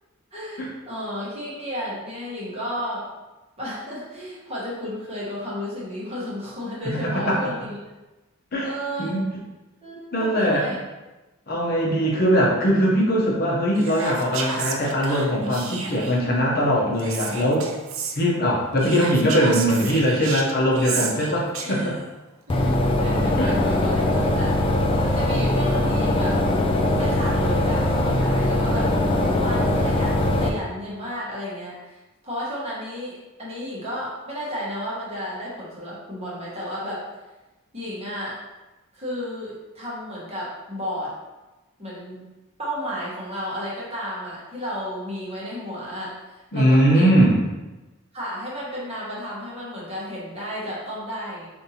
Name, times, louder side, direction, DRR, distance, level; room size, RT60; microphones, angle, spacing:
voice 1, 0.3-3.1 3.6-7.8 8.6-9.1 9.8-10.8 21.6-22.0 22.5-24.6 25.0-26.4 27.0-37.0 37.7-38.4 38.9-41.1 41.8-42.3 42.6-47.2 48.1-51.5, equal, 25° right, -7 dB, 1.1 m, -33 dB
voice 2, 10.1-10.8 11.5-17.7 18.2-22.0 23.4-23.5 46.5-47.4, equal, 45° left, -4 dB, 0.7 m, -21 dB
Whispering, 13.8-16.3 17.0-18.2 18.8-22.1, right 5 dB, 65° right, 0.4 m, -32 dB
sound 1, 22.5-30.5, left 1 dB, 25° left, 0.3 m, -21 dB
5.2 x 2.6 x 2.8 m, 1.1 s
head